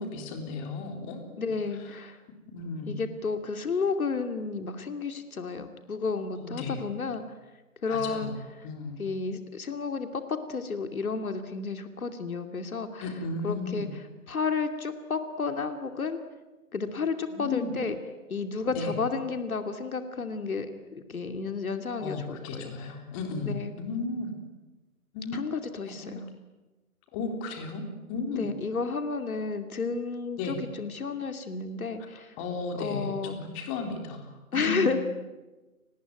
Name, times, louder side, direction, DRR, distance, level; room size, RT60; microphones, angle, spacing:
voice 1, 0.0-1.3 1.8-2.0 2.5-2.9 6.4-6.8 7.9-9.0 13.0-13.9 17.3-17.7 18.7-18.9 22.0-24.3 25.1-25.5 25.9-26.2 27.1-27.8 28.1-28.5 30.4-30.6 32.1-35.0, left 3 dB, 20° left, 4 dB, 3.8 m, -35 dB
voice 2, 1.4-2.2 2.9-7.2 7.8-8.3 9.0-13.1 13.4-13.9 14.3-16.2 16.7-18.0 18.3-22.7 23.4-23.7 25.3-26.2 28.4-32.3 32.8-33.4 34.5-35.0, left 4 dB, 70° left, 8 dB, 2.7 m, -32 dB
30.0 x 20.0 x 9.4 m, 1.2 s
figure-of-eight pair, 150°, 44 cm